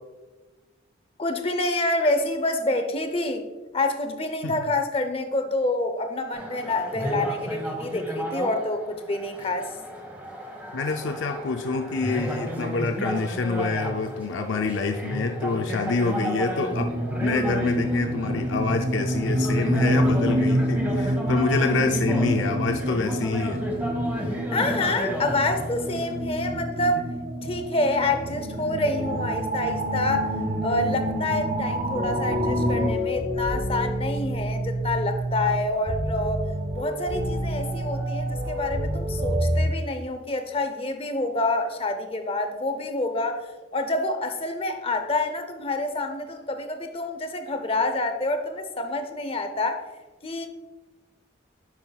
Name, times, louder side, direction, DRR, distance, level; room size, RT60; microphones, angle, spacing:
voice 1, 1.2-3.5 3.7-9.7 24.5-27.1 27.4-30.3 30.6-36.4 36.7-49.8 50.2-50.5, left 2 dB, 30° left, 7 dB, 0.6 m, -27 dB
sound 1, 6.3-26.2, equal, 10° right, 1.1 m, -33 dB
voice 2, 10.7-16.9 17.2-23.6 31.3-31.5, left 3 dB, 70° left, 4 dB, 0.5 m, -27 dB
sound 2, 16.7-32.9, right 1 dB, 45° right, 0.6 m, -27 dB
sound 3, 31.9-39.7, equal, 30° right, 2.2 m, -28 dB
10.5 x 5.7 x 2.3 m, 1.2 s
head